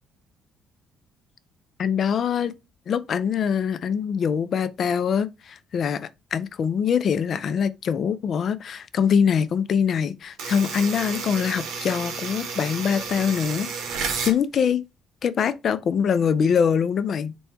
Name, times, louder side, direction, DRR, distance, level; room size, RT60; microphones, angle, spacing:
voice 1, 1.8-2.5 2.9-14.8 15.2-17.3, left 7 dB, 50° left, 0.4 m, -24 dB
sound 1, 10.4-14.4, right 5 dB, 80° right, 1.0 m, -31 dB
4.1 x 2.2 x 4.4 m
cardioid pair, 115°, 0 cm